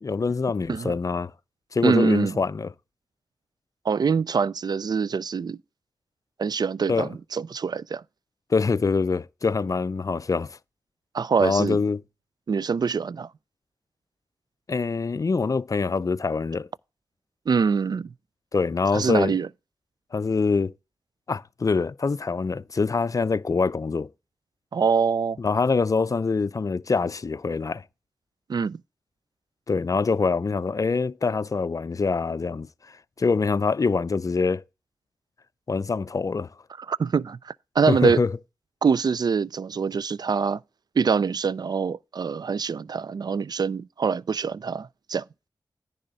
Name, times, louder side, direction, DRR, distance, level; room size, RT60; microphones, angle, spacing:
voice 1, 0.0-1.3 1.7-2.7 6.9-7.1 8.5-10.6 11.4-12.0 14.7-16.7 18.5-19.4 20.1-20.7 21.3-24.1 25.4-27.8 29.7-32.7 33.2-34.6 35.7-36.5 37.9-38.3, left 4 dB, 45° left, 0.5 m, -24 dB
voice 2, 1.8-2.4 3.8-5.6 6.4-8.0 11.1-11.8 12.5-13.3 17.5-18.1 18.9-19.5 24.7-25.4 28.5-28.8 36.8-38.2 38.8-40.6 41.0-45.2, right 5 dB, 55° right, 0.4 m, -24 dB
10.0 x 3.5 x 6.6 m
cardioid pair, 50°, 8 cm